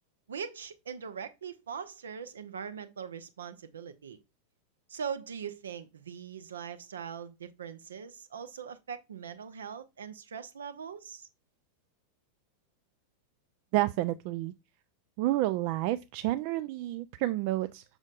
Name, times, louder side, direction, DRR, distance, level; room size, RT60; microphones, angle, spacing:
voice 1, 0.3-4.2 4.9-11.3, right 7 dB, 65° right, 0.7 m, -41 dB
voice 2, 13.7-14.5 15.2-17.8, right 16 dB, 45° right, 0.3 m, -30 dB
6.3 x 6.2 x 2.4 m
figure-of-eight pair, 90°, 0 cm